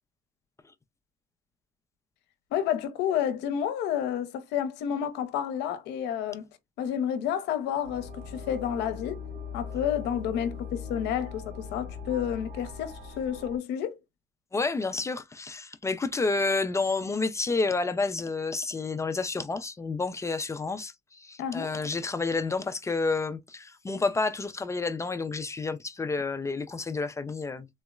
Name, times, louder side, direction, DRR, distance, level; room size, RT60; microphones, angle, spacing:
voice 1, 2.5-6.5 6.8-9.2 9.5-14.0 21.4-21.7, left 9 dB, 85° left, 0.6 m, -30 dB
sound 1, 7.8-13.6, left 5 dB, 85° right, 1.3 m, -40 dB
voice 2, 14.5-27.7, left 3 dB, 15° left, 0.3 m, -30 dB
3.7 x 2.0 x 2.3 m
cardioid pair, 110°, 17 cm